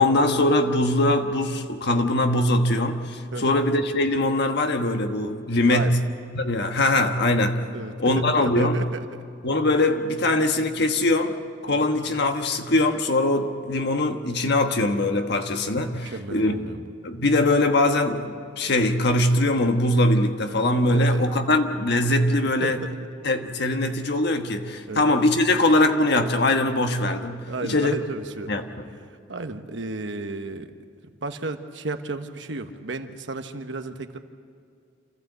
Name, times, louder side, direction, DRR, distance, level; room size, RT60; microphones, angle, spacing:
voice 1, 0.0-6.0 6.3-7.6 8.0-8.8 9.4-11.4 11.6-16.6 17.0-22.8 23.2-27.9 28.5-28.6, left 2 dB, 60° left, 5 dB, 1.4 m, -22 dB
voice 2, 3.3-3.6 5.6-5.9 7.7-9.0 11.7-12.0 16.0-16.9 20.9-21.2 22.6-23.0 24.9-25.1 27.5-28.5 29.3-30.7 31.2-34.2, right 3 dB, 70° right, 7 dB, 1.2 m, -33 dB
27.5 x 15.0 x 8.1 m, 2.3 s
head